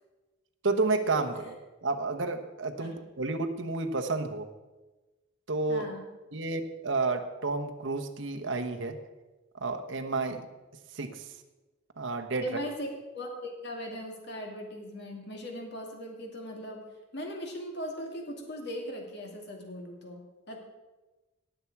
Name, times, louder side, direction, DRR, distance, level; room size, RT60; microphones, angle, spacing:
voice 1, 0.6-1.6 1.8-4.5 5.5-5.9 6.3-9.0 9.6-10.4 10.9-11.3 12.0-12.4, right 3 dB, 65° right, 6 dB, 1.1 m, -30 dB
voice 2, 5.7-6.1 12.4-16.8 17.1-20.6, equal, 55° left, 1 dB, 2.3 m, -39 dB
18.5 x 7.2 x 4.7 m, 1.1 s
head